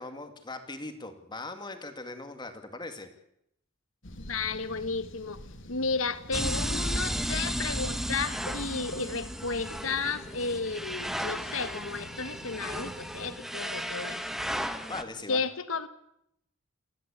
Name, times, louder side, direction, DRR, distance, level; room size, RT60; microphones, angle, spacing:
voice 1, 0.0-3.1 14.9-15.4, left 2 dB, 20° left, 7 dB, 2.2 m, -40 dB
sound 1, 4.0-13.3, left 1 dB, 65° left, 2.6 m, -47 dB
voice 2, 4.2-5.4 5.7-14.2 14.6-14.8 15.3-15.9, left 4 dB, 80° left, 12 dB, 1.4 m, -33 dB
sound 2, 6.3-15.0, equal, ahead, 1.1 m, -34 dB
28.5 x 11.5 x 8.4 m, 0.77 s
head